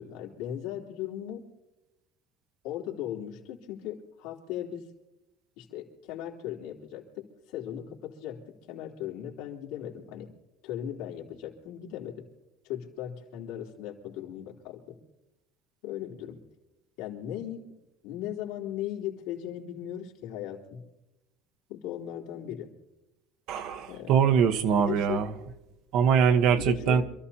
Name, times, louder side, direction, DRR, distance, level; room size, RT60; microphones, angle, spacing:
voice 1, 0.0-1.4 2.6-4.9 5.6-8.4 8.7-10.3 10.6-12.3 12.6-14.9 15.8-16.4 17.0-17.6 18.0-20.8 21.7-22.7 23.9-24.2 24.7-25.2 26.6-27.0, left 11 dB, 75° left, -1 dB, 3.2 m, -37 dB
voice 2, 23.5-25.3 25.9-27.0, right 7 dB, 55° right, 8 dB, 1.1 m, -23 dB
27.5 x 14.0 x 2.9 m, 0.97 s
cardioid pair, 150°, 0 cm